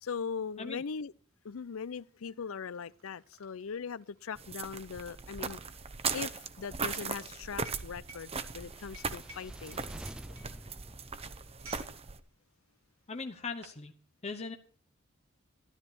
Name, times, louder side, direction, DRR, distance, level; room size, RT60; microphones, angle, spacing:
voice 1, 0.0-1.1 1.4-5.6 6.1-9.9, left 6 dB, 75° left, 0.5 m, -40 dB
sound 1, 1.6-1.7 2.0-12.0 12.3-12.5 13.2-13.8, right 3 dB, 70° right, 2.8 m, -54 dB
sound 2, 4.4-12.2, right 5 dB, 30° right, 0.9 m, -39 dB
sound 3, 8.5-11.9, equal, 5° right, 0.6 m, -49 dB
voice 2, 13.1-13.9 14.2-14.6, left 4 dB, 30° left, 0.9 m, -39 dB
13.0 x 13.0 x 4.5 m
head